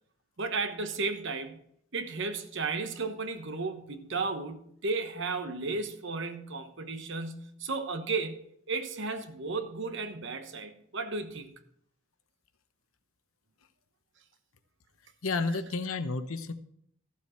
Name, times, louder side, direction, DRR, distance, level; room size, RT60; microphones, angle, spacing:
voice 1, 0.4-1.6 1.9-8.4 8.7-11.5, right 3 dB, 55° right, 1.0 m, -34 dB
voice 2, 15.2-16.5, left 3 dB, 70° left, 0.9 m, -31 dB
14.5 x 7.4 x 4.4 m
head